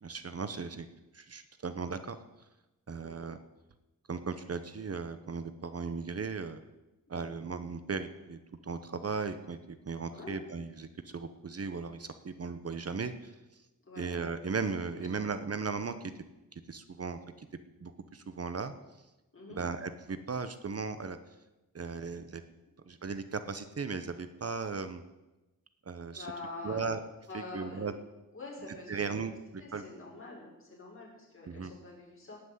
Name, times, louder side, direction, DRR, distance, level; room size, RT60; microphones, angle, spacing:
voice 1, 0.0-0.9 1.1-2.2 2.9-3.4 4.1-6.6 7.1-13.6 14.0-16.1 16.5-17.5 17.8-18.7 19.5-21.2 21.7-22.4 22.8-25.0 25.9-26.3 26.6-27.0 27.3-27.9 28.9-29.3 29.7-29.8 31.5-31.7, right 5 dB, 45° right, 10 dB, 1.0 m, -37 dB
voice 2, 10.1-10.4 13.8-14.0 14.9-15.3 19.3-19.6 26.1-27.0 27.3-27.9 28.3-29.2 29.6-32.4, left 2 dB, 40° left, -3 dB, 6.3 m, -46 dB
18.0 x 6.2 x 9.6 m, 1.0 s
wide cardioid pair, 100°, 33 cm